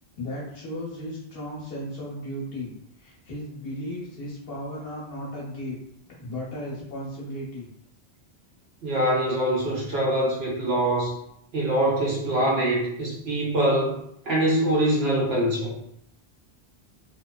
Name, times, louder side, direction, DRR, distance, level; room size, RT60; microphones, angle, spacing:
voice 1, 0.2-2.7 3.0-5.8 6.1-7.7, equal, 60° left, -7 dB, 1.1 m, -35 dB
voice 2, 8.8-11.1 11.5-15.7, right 1 dB, 65° right, -4 dB, 1.0 m, -24 dB
2.7 x 2.0 x 2.2 m, 0.74 s
omnidirectional pair, 1.1 m